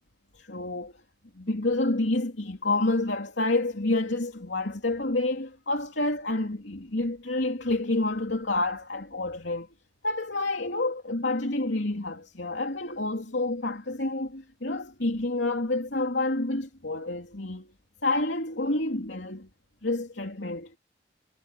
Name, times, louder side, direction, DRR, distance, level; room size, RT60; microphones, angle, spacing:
voice 1, 0.3-0.9 1.3-9.7 10.0-17.7 18.0-19.5 19.8-20.8, left 2 dB, 85° left, 3.0 m, -28 dB
head